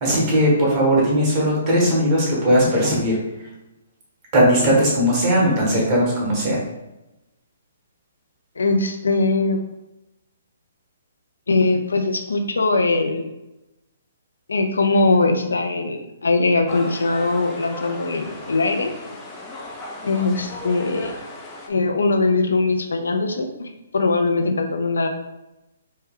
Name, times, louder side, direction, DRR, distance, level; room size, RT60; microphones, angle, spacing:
voice 1, 0.0-3.2 4.3-6.6, equal, 30° right, -4 dB, 1.5 m, -18 dB
voice 2, 8.6-9.6 11.5-13.3 14.5-18.9 20.0-21.1 21.7-25.1, left 3 dB, 85° left, 5 dB, 0.6 m, -21 dB
sound 1, 16.7-21.7, left 2 dB, 15° left, 0.5 m, -36 dB
4.3 x 2.1 x 3.7 m, 0.97 s
hypercardioid pair, 145°, 0 cm